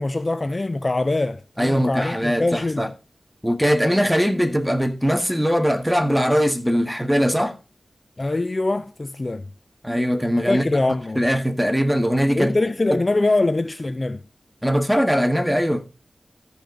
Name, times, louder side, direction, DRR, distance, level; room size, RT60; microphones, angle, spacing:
voice 1, 0.0-2.9 8.2-9.4 10.5-11.2 12.4-14.2, left 2 dB, 40° left, 0.6 m, -23 dB
voice 2, 1.6-2.9 3.4-7.6 9.8-12.6 14.6-15.8, equal, 5° right, 1.7 m, -21 dB
14.0 x 5.1 x 3.8 m
cardioid pair, 45°, 0 cm